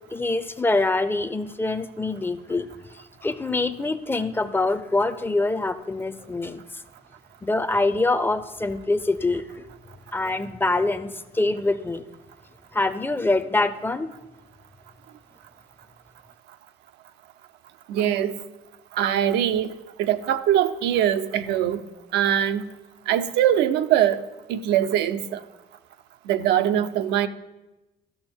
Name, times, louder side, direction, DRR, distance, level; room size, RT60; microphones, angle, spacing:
voice 1, 0.1-2.7 3.2-6.8 7.4-9.7 10.1-12.0 12.7-14.1, left 2 dB, 15° left, 12 dB, 0.5 m, -25 dB
voice 2, 17.9-18.4 18.9-19.7 20.0-21.8 22.1-22.7 23.1-24.2 24.5-25.4 26.3-27.3, right 10 dB, 85° right, 9 dB, 0.5 m, -22 dB
13.5 x 6.1 x 4.4 m, 1.0 s
cardioid pair, 110°, 17 cm